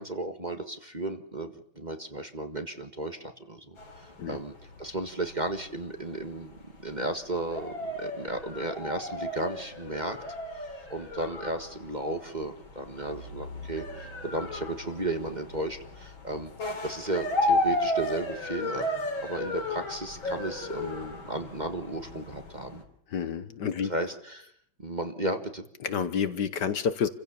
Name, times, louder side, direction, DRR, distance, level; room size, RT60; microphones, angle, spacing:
voice 1, 0.0-4.5 4.8-10.2 10.5-22.8 23.8-24.5 24.8-25.6, right 1 dB, 25° right, 7 dB, 1.6 m, -34 dB
sound 1, 3.8-22.8, left 1 dB, 85° left, 4.2 m, -34 dB
voice 2, 23.1-23.9 25.8-27.1, left 7 dB, 65° left, 12 dB, 1.6 m, -29 dB
28.0 x 16.0 x 7.0 m, 0.66 s
omnidirectional pair, 2.1 m